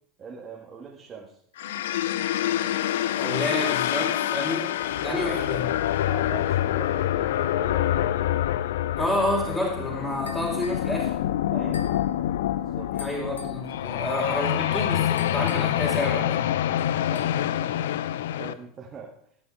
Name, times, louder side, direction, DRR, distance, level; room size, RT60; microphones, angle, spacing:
voice 1, 0.2-1.4 5.0-5.4 6.1-8.2 11.5-12.0 12.5-12.9 13.8-15.1 17.1-17.9 18.3-19.1, right 5 dB, 30° right, -2 dB, 2.0 m, -41 dB
sound 1, 1.6-18.5, left 12 dB, 65° left, 0.5 m, -26 dB
voice 2, 3.2-4.7 5.0-5.6 9.0-11.1 12.9-16.4, left 1 dB, 10° left, -6 dB, 3.9 m, -29 dB
sound 2, 10.3-10.9 11.7-12.1 13.0-13.6 15.2-15.9 16.8-17.5, left 5 dB, 80° left, 1.0 m, -44 dB
16.5 x 9.7 x 3.5 m, 0.65 s
figure-of-eight pair, 80°, 0 cm